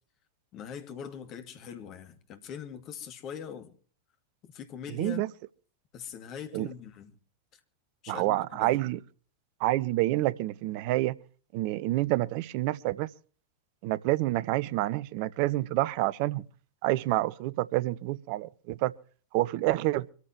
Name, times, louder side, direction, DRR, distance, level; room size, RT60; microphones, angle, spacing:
voice 1, 0.5-3.7 4.4-5.2 5.9-7.1 7.5-7.6 8.0-8.7, left 8 dB, 35° left, 2.2 m, -42 dB
voice 2, 4.9-5.3 6.5-6.7 8.1-9.0 9.6-11.2 11.5-13.1 13.8-16.5 16.8-18.9 19.3-20.1, right 17 dB, 45° right, 0.7 m, -28 dB
25.0 x 14.0 x 2.9 m
figure-of-eight pair, 90°, 0 cm